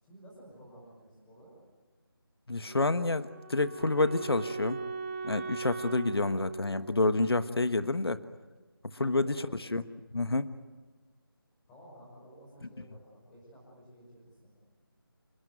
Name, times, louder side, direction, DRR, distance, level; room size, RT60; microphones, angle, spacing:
voice 1, 0.0-1.5 8.9-10.1 11.7-14.5, equal, 5° left, -4 dB, 5.6 m, -54 dB
voice 2, 2.5-4.8 5.2-8.2 8.9-9.8 10.1-10.5, left 2 dB, 85° left, 11 dB, 1.4 m, -28 dB
Wind instrument woodwind instrument, 2.7-7.7, right 4 dB, 30° right, 4.2 m, -40 dB
28.0 x 20.5 x 9.4 m, 1.3 s
figure-of-eight pair, 175°, 13 cm